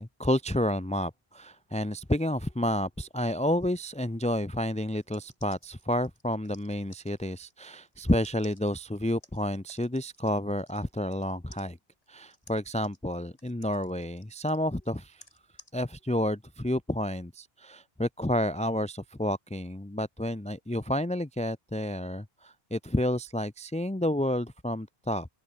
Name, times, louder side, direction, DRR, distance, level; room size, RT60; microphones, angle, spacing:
voice 1, 0.0-11.8 12.1-15.2 15.7-25.3, left 1 dB, 5° left, 0.8 m, -30 dB
sound 1, 5.0-11.3 11.5-15.7, left 1 dB, 35° left, 6.0 m, -57 dB
open air
omnidirectional pair, 1.1 m